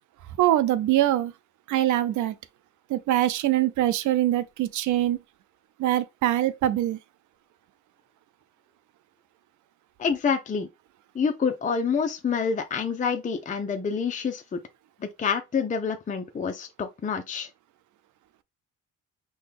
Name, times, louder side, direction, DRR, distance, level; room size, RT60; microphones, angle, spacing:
voice 1, 0.4-1.3 1.7-2.4 2.9-5.2 5.8-7.0, right 13 dB, 75° right, 0.5 m, -23 dB
voice 2, 10.0-10.7 11.1-14.6 15.0-17.5, left 6 dB, 25° left, 0.5 m, -27 dB
4.1 x 2.3 x 3.3 m
cardioid pair, 90°, 30 cm